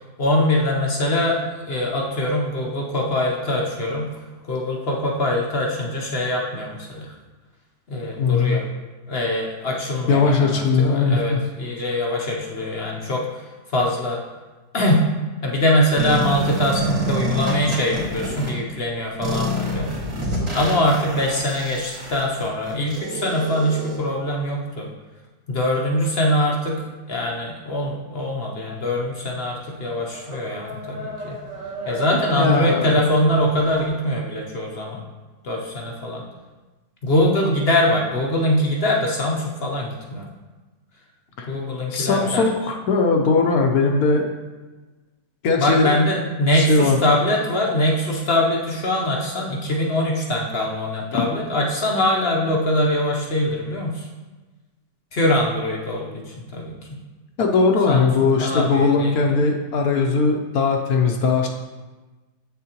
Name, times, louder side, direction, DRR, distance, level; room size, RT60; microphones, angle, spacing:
voice 1, 0.2-4.1 4.5-7.1 7.9-8.6 9.1-13.3 13.7-14.2 14.7-15.1 15.4-19.9 20.5-24.9 25.5-26.8 27.1-31.4 31.9-35.0 35.4-36.2 37.0-40.3 41.5-42.4 45.6-54.1 55.1-57.0 57.9-58.1 58.4-59.3, left 1 dB, 50° left, -1 dB, 0.8 m, -23 dB
voice 2, 8.2-8.6 10.1-11.4 32.3-33.0 41.4-41.5 41.9-44.3 45.4-46.1 46.5-47.0 51.1-51.2 57.4-61.5, left 4 dB, 65° left, 3 dB, 1.1 m, -19 dB
sound 1, 16.0-18.5 19.2-24.0, equal, 50° right, 2.0 m, -27 dB
sound 2, 28.7-33.9, equal, 85° right, 2.0 m, -37 dB
7.6 x 7.4 x 2.9 m, 1.2 s
omnidirectional pair, 1.9 m